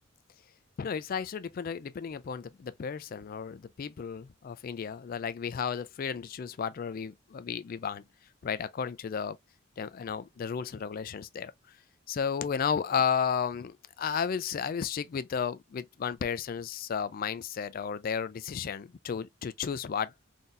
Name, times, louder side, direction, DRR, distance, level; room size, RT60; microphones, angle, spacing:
voice 1, 0.8-8.0 8.4-9.4 9.8-11.5 12.1-20.1, left 7 dB, 45° left, 0.3 m, -33 dB
3.8 x 2.7 x 2.5 m
head